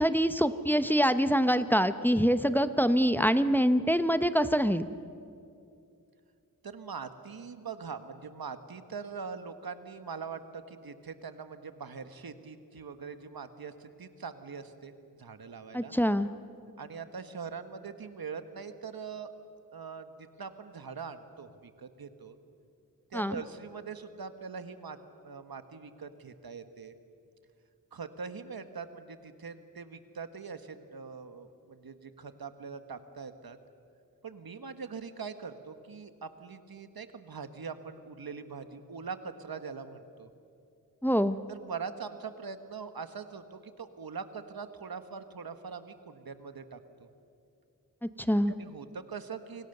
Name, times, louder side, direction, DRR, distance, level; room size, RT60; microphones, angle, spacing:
voice 1, 0.0-4.9 15.7-16.3 23.1-23.3 41.0-41.4 48.0-48.5, equal, 5° left, 11 dB, 0.8 m, -25 dB
voice 2, 6.6-15.9 16.8-19.3 19.7-22.4 23.1-25.0 25.2-26.9 27.9-33.6 34.2-40.3 41.5-47.1 48.5-49.7, right 5 dB, 90° right, 9 dB, 1.4 m, -42 dB
29.5 x 25.0 x 6.7 m, 2.5 s
wide cardioid pair, 90°, 35 cm